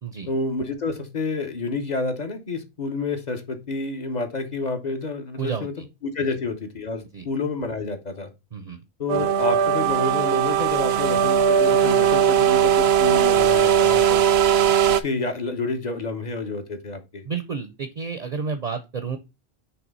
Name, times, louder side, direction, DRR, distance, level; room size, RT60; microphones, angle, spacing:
voice 1, 0.3-5.7 6.0-8.3 9.0-14.2 14.9-17.2, left 3 dB, 40° left, 6 dB, 1.2 m, -29 dB
voice 2, 5.4-5.9 7.1-7.3 8.5-8.8 17.2-19.2, right 5 dB, 45° right, 8 dB, 0.7 m, -31 dB
sound 1, 9.1-15.0, right 8 dB, 75° right, 0.8 m, -19 dB
5.9 x 3.4 x 5.3 m, 0.26 s
omnidirectional pair, 1.1 m